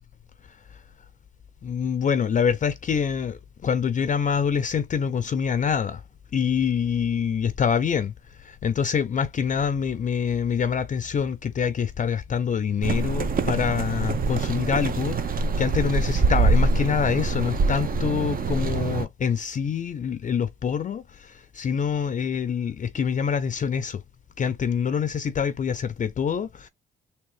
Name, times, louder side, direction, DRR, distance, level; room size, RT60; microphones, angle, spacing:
voice 1, 1.6-6.0 6.3-8.1 8.4-24.0 24.4-26.7, left 7 dB, 40° left, 0.5 m, -25 dB
sound 1, 12.8-19.1, right 4 dB, 45° right, 0.8 m, -24 dB
3.7 x 2.7 x 3.2 m
cardioid pair, 90°, 20 cm